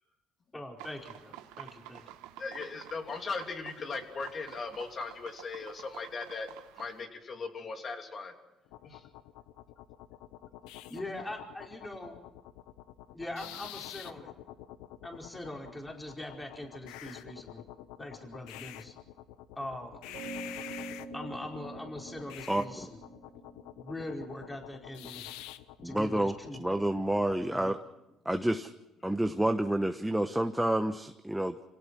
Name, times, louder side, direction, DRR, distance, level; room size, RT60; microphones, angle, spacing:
voice 1, 0.5-2.0 10.9-12.2 13.1-14.3 15.0-17.6 18.0-18.9 19.5-20.0 21.1-23.0 23.8-25.3 25.8-26.6 27.5-27.8, left 1 dB, 15° left, 1 dB, 4.8 m, -42 dB
sound 1, 0.8-7.0, right 13 dB, 90° right, 1.2 m, -50 dB
voice 2, 2.4-6.5 6.8-8.3 8.8-9.0, left 4 dB, 45° left, 4 dB, 3.1 m, -38 dB
sound 2, 8.7-27.4, left 13 dB, 90° left, 0.8 m, -47 dB
sound 3, 20.1-24.9, right 3 dB, 70° right, 3.8 m, -45 dB
voice 3, 25.8-27.8 28.2-28.7 29.0-31.5, right 1 dB, 5° right, 6 dB, 1.2 m, -29 dB
26.5 x 17.5 x 6.3 m, 0.98 s
supercardioid pair, 80°, 0 cm